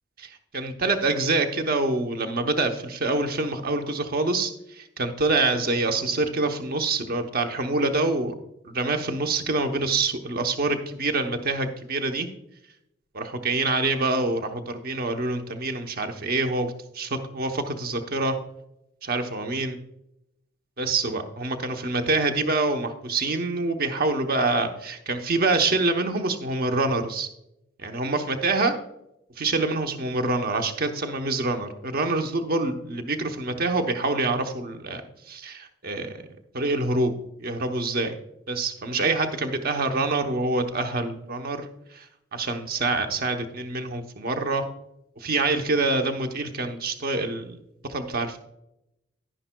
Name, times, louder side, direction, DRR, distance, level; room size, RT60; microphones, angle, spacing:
voice 1, 0.2-4.5 4.8-8.3 8.6-12.3 13.1-18.4 19.0-19.8 20.8-27.3 27.8-28.7 29.4-35.0 35.3-36.2 36.5-37.1 37.4-38.1 38.5-41.7 41.9-42.1 42.3-44.6 45.2-47.6 47.9-48.4, right 3 dB, 55° right, 6 dB, 0.9 m, -26 dB
11.0 x 10.5 x 2.3 m, 0.82 s
head